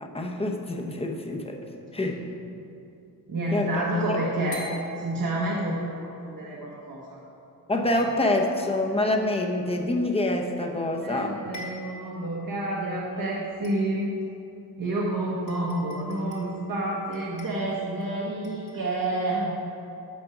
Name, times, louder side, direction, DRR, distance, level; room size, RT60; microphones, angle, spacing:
voice 1, 0.0-1.6 1.9-2.2 3.5-4.5 7.7-11.4, left 1 dB, 15° left, 2 dB, 0.7 m, -26 dB
sound 1, 0.8-1.4 4.5-5.8 7.9-8.7 10.8-10.9 11.2-11.3 11.5-12.2 12.7-12.8 13.6-14.2 15.0-15.1 15.5-16.6 17.1-18.1 18.4-18.9, left 2 dB, 55° left, 2.2 m, -45 dB
voice 2, 3.3-4.6 5.0-7.2 11.0-14.1 14.8-19.5, right 1 dB, 65° right, -4 dB, 1.2 m, -29 dB
7.3 x 6.2 x 5.9 m, 2.8 s
wide cardioid pair, 135°, 36 cm